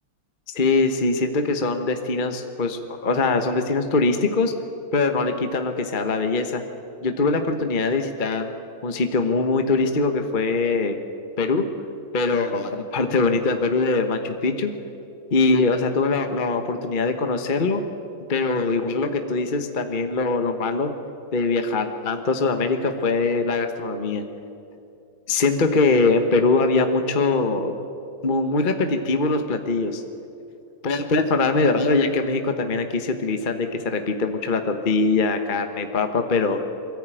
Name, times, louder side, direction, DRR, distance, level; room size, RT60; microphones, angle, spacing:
voice 1, 0.5-4.5 4.9-6.6 7.0-8.5 8.8-11.0 11.4-11.7 12.1-14.7 15.3-17.8 18.3-20.9 21.3-24.2 25.3-27.7 28.2-30.0 30.8-36.6, left 3 dB, 30° left, 6 dB, 1.0 m, -22 dB
22.5 x 14.5 x 9.1 m, 2.6 s
omnidirectional pair, 2.2 m